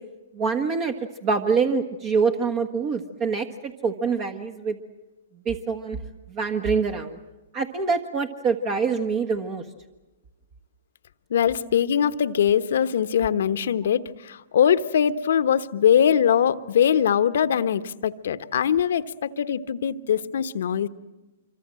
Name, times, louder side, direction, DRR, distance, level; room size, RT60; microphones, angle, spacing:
voice 1, 0.3-1.0 1.2-4.8 5.4-6.0 6.3-7.2 7.5-9.6, right 5 dB, 35° right, 7 dB, 1.5 m, -25 dB
voice 2, 11.3-20.9, left 8 dB, 70° left, 13 dB, 1.1 m, -22 dB
26.0 x 24.0 x 7.7 m, 1.1 s
hypercardioid pair, 130°, 0 cm